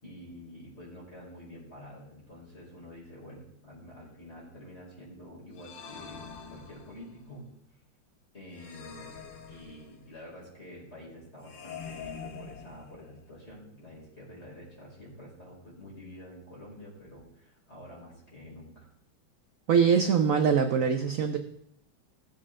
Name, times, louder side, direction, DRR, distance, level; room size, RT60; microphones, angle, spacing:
voice 1, 0.0-6.2 6.5-7.5 8.3-9.2 9.5-18.9, left 1 dB, 30° left, -4 dB, 4.6 m, -48 dB
sound 1, 5.5-7.2 8.5-10.2 11.4-13.3, left 6 dB, 65° left, 1.9 m, -45 dB
voice 2, 19.7-21.4, right 6 dB, 65° right, 6 dB, 0.8 m, -23 dB
17.0 x 7.5 x 3.7 m, 0.73 s
omnidirectional pair, 2.2 m